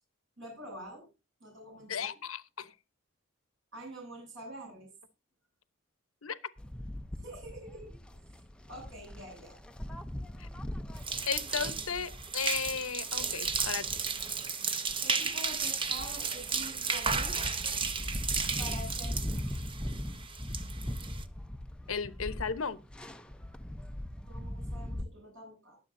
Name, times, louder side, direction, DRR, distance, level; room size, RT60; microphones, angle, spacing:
voice 1, 0.4-1.1 1.4-2.1 3.7-4.9 7.2-7.9 8.7-9.6 11.5-12.0 15.0-17.4 18.6-19.6 24.3-25.8, right 1 dB, 60° right, 8.0 m, -46 dB
voice 2, 1.9-2.7 6.2-6.4 10.4-10.5 11.3-13.9 21.9-22.8, left 6 dB, 75° left, 1.0 m, -35 dB
sound 1, 6.6-25.0, left 1 dB, 5° left, 0.7 m, -40 dB
sound 2, 11.0-21.2, right 5 dB, 25° right, 0.9 m, -34 dB
22.0 x 7.6 x 2.7 m
head